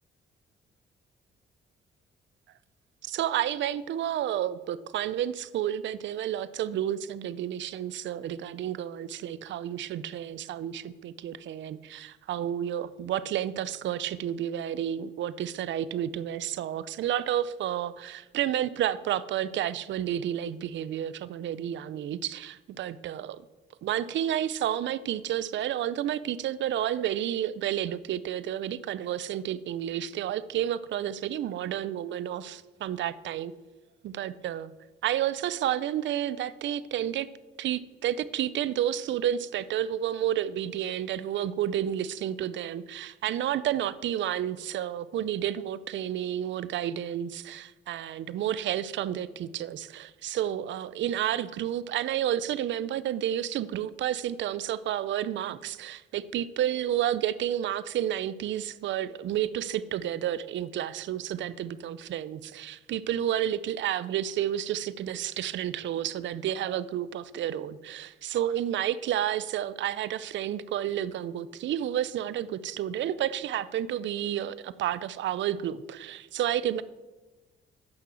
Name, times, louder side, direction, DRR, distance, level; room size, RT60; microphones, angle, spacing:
voice 1, 3.0-23.4 23.8-33.5 34.0-34.7 35.0-37.3 37.6-76.8, right 11 dB, 70° right, 16 dB, 0.5 m, -31 dB
8.7 x 6.1 x 7.7 m, 1.2 s
cardioid pair, 90°, 20 cm